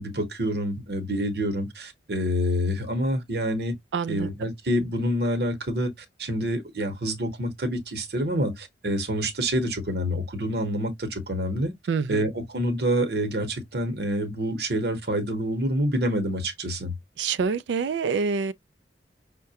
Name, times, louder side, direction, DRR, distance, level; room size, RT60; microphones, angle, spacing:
voice 1, 0.0-3.8 4.1-5.9 6.2-11.7 12.1-16.9, equal, 60° right, 1.0 m, -27 dB
voice 2, 3.9-4.3 11.9-12.3 17.2-18.5, right 5 dB, 85° right, 0.4 m, -26 dB
5.7 x 2.2 x 2.8 m
head